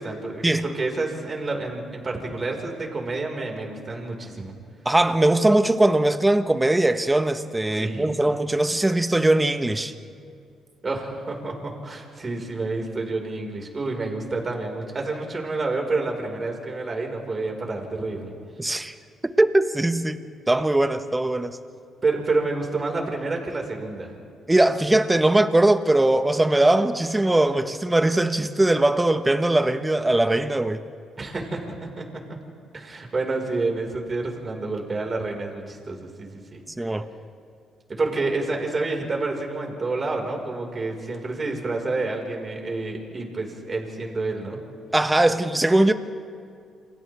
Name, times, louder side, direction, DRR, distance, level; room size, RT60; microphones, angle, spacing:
voice 1, 0.0-4.5 7.7-8.1 10.8-18.3 22.0-24.1 31.2-32.3 32.7-36.6 37.9-44.6, right 3 dB, 35° right, 1 dB, 5.1 m, -29 dB
voice 2, 4.8-9.9 18.6-18.9 19.4-21.5 24.5-30.8 36.8-37.0 44.9-45.9, right 1 dB, 15° right, 9 dB, 1.2 m, -20 dB
29.0 x 27.5 x 3.6 m, 2.4 s
cardioid pair, 90°, 0 cm